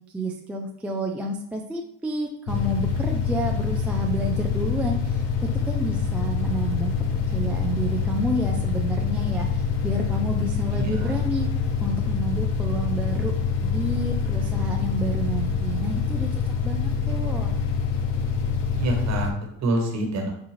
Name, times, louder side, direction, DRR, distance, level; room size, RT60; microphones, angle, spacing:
voice 1, 0.0-6.9 7.3-11.5 11.8-13.3 13.6-17.5, right 1 dB, 5° right, 1 dB, 0.3 m, -30 dB
sound 1, 2.5-19.3, left 6 dB, 70° left, 0.9 m, -25 dB
voice 2, 10.7-11.2 18.8-20.3, right 2 dB, 45° right, 1 dB, 1.3 m, -27 dB
5.3 x 2.4 x 3.0 m, 0.75 s
supercardioid pair, 90°, 39 cm